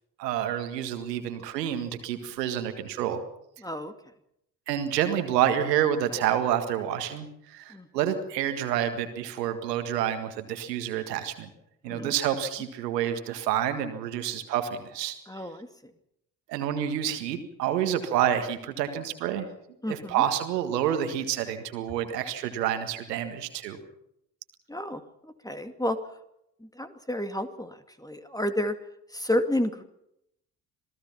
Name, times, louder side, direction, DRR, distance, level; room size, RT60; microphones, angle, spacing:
voice 1, 0.2-3.2 4.7-11.5 11.8-15.4 16.5-19.5 19.9-23.8, right 10 dB, 80° right, 8 dB, 1.9 m, -28 dB
voice 2, 3.6-3.9 7.7-7.9 11.9-12.1 15.3-15.9 19.8-20.2 24.7-26.0 26.6-28.8 29.1-29.8, left 1 dB, 10° left, 8 dB, 2.4 m, -31 dB
26.5 x 18.5 x 5.9 m, 0.79 s
figure-of-eight pair, 40°, 48 cm